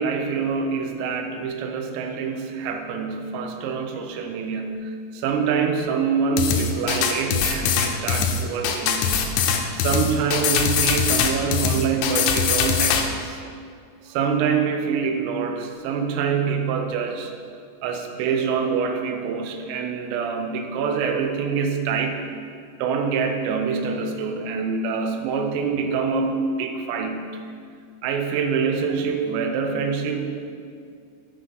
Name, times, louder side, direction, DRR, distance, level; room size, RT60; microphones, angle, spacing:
voice 1, 0.0-9.3 9.7-13.4 14.1-17.3 17.8-22.2 22.8-27.3 28.0-30.4, right 5 dB, 85° right, 5 dB, 3.4 m, -25 dB
sound 1, 6.4-13.0, left 6 dB, 85° left, 3.2 m, -22 dB
9.4 x 4.7 x 5.9 m, 2.2 s
omnidirectional pair, 5.9 m